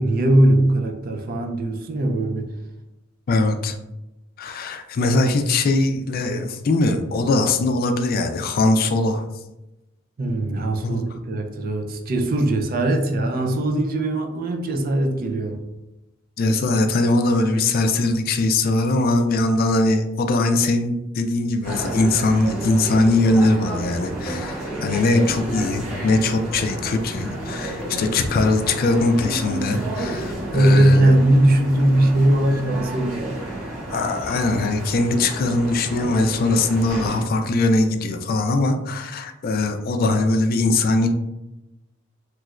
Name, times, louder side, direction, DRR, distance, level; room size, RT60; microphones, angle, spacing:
voice 1, 0.0-2.5 10.2-15.6 30.5-33.2, right 1 dB, 45° right, 4 dB, 0.4 m, -19 dB
voice 2, 3.3-3.8 4.4-9.2 10.8-11.0 16.4-31.2 33.9-41.1, left 2 dB, 50° left, 7 dB, 0.3 m, -21 dB
sound 1, 21.6-37.2, right 1 dB, 80° right, 1.4 m, -31 dB
sound 2, 23.3-23.4 23.8-23.9 24.3-24.8 25.2-25.3 25.6-25.7 26.1-26.2 26.6-26.7 27.8-28.0 29.1-29.2, left 1 dB, 5° left, 0.6 m, -36 dB
3.0 x 3.0 x 2.4 m, 0.93 s
head